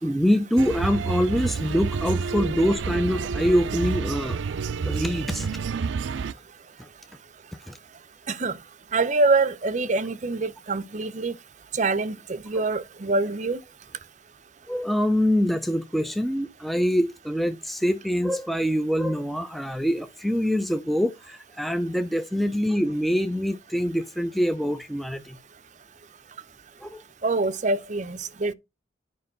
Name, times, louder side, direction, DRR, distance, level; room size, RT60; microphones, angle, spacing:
voice 1, 0.0-4.4 4.8-5.5 6.8-6.9 7.7-7.8 14.7-25.4 26.8-27.0, equal, ahead, 0.5 m, -25 dB
sound 1, 0.6-6.3, right 5 dB, 80° right, 0.4 m, -29 dB
voice 2, 8.9-11.3 11.7-13.6 27.2-28.5, right 3 dB, 40° right, 0.7 m, -25 dB
10.0 x 5.3 x 5.3 m
head